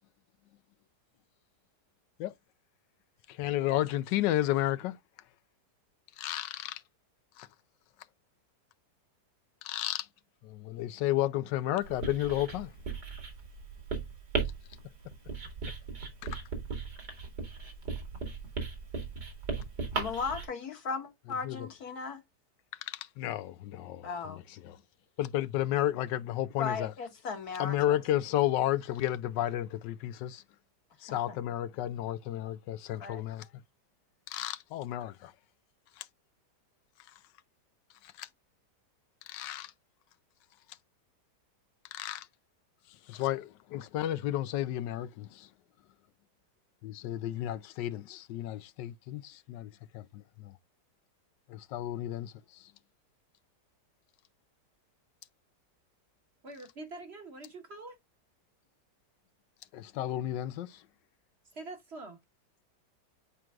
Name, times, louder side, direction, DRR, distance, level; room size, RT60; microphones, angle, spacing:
voice 1, 3.3-5.0 6.2-6.8 7.4-7.5 9.6-10.1 10.4-12.7 16.2-16.4 21.4-21.6 22.8-24.8 25.2-26.9 27.6-30.4 31.0-33.5 34.3-35.3 36.0-36.1 38.0-38.3 39.3-39.7 41.9-42.3 43.1-45.5 46.8-50.5 51.5-52.7 59.7-60.8, left 13 dB, 85° left, 1.3 m, -32 dB
Writing, 11.8-20.5, right 4 dB, 70° right, 2.7 m, -37 dB
voice 2, 20.0-22.2 24.0-24.4 26.6-28.0 31.1-31.4 33.0-33.2, left 5 dB, 60° left, 1.8 m, -37 dB
voice 3, 56.4-58.0 61.4-62.2, right 2 dB, 40° right, 1.3 m, -45 dB
9.7 x 4.6 x 2.3 m
omnidirectional pair, 1.9 m